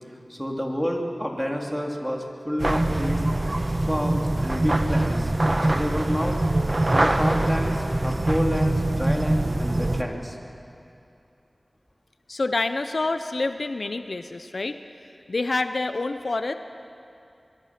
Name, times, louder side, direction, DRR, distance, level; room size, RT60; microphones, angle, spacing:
voice 1, 0.3-3.2 3.9-5.3 5.7-6.4 6.9-10.4, equal, ahead, 0 dB, 2.9 m, -29 dB
sound 1, 2.6-10.0, right 1 dB, 40° right, 1.2 m, -23 dB
voice 2, 12.3-14.8 15.3-16.5, left 3 dB, 75° left, 9 dB, 0.7 m, -27 dB
24.5 x 22.5 x 6.0 m, 2.6 s
wide cardioid pair, 55°, 0 cm